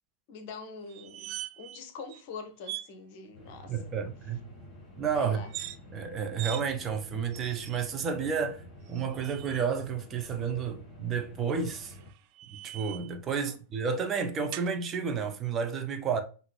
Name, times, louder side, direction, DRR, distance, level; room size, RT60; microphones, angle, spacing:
voice 1, 0.3-3.9 5.2-5.5 13.3-13.6, left 4 dB, 50° left, 0.8 m, -44 dB
sound 1, 0.9-1.8 2.1-2.2 2.6-2.9 5.4-5.8 6.4-6.6 7.3-7.9 8.9-9.7 11.6-13.2 14.5-14.7, right 13 dB, 45° right, 0.3 m, -41 dB
sound 2, 3.3-12.1, left 1 dB, 25° left, 2.6 m, -50 dB
voice 2, 3.7-4.4 5.0-5.4 5.9-8.6 8.9-11.9 12.6-16.2, right 6 dB, 25° right, 0.7 m, -31 dB
5.7 x 2.7 x 3.2 m
figure-of-eight pair, 90°, 0 cm